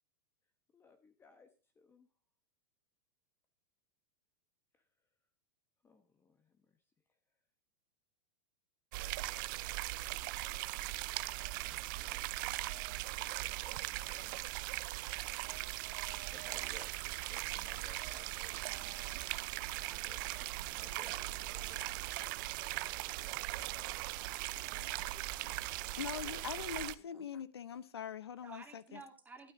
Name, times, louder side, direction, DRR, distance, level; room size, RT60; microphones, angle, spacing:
voice 1, 0.7-1.5 1.8-2.1 4.7-4.8 5.8-6.8 11.6-12.9 13.2-14.6 16.1-19.0 19.7-21.7 23.0-23.2 25.0-25.1, left 4 dB, 15° left, 1.1 m, -61 dB
sound 1, 8.9-26.9, right 18 dB, 55° right, 0.6 m, -39 dB
voice 2, 21.5-22.0 24.5-26.0 27.0-27.2 28.4-29.5, right 4 dB, 15° right, 2.8 m, -56 dB
voice 3, 26.0-29.0, left 8 dB, 90° left, 0.8 m, -42 dB
12.5 x 12.0 x 2.7 m
hypercardioid pair, 115°, 13 cm